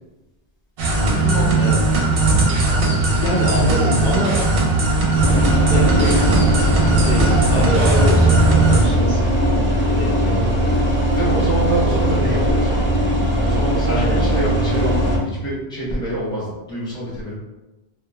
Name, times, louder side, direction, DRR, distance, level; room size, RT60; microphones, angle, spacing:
sound 1, 0.8-8.9, right 3 dB, 65° right, 0.7 m, -18 dB
voice 1, 1.1-1.7 11.1-13.1 13.4-17.3, right 1 dB, 5° left, -7 dB, 0.8 m, -26 dB
voice 2, 2.8-4.4 5.7-6.4 6.8-10.7 13.9-14.2, left 1 dB, 55° left, -7 dB, 0.6 m, -25 dB
sound 2, 5.2-15.2, equal, 20° right, 0.3 m, -19 dB
2.3 x 2.3 x 3.0 m, 1.0 s
omnidirectional pair, 1.1 m